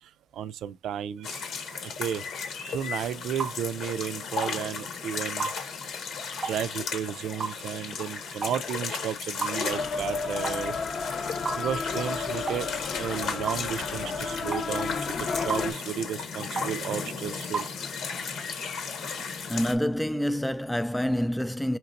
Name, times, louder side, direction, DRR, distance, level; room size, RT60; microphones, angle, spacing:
voice 1, 0.0-1.4 1.7-2.2 2.7-5.5 6.4-10.7 11.6-12.7 13.0-17.7, right 9 dB, 75° right, 0.4 m, -33 dB
sound 1, 1.2-19.8, left 5 dB, 75° left, 1.3 m, -35 dB
sound 2, 3.4-3.6 4.4-4.6 5.4-5.6 6.4-6.6 7.4-7.6 8.4-8.6 9.4-9.6 10.4-10.6 11.4-11.6 12.5-12.6 13.5-13.6 14.5-14.7 15.5-15.7 16.6-16.7 17.5-17.7, right 5 dB, 40° right, 0.7 m, -32 dB
sound 3, 9.7-15.7, left 4 dB, 55° left, 0.8 m, -32 dB
voice 2, 19.5-21.8, equal, 5° left, 0.4 m, -27 dB
5.8 x 2.9 x 2.6 m
cardioid pair, 90°, 0 cm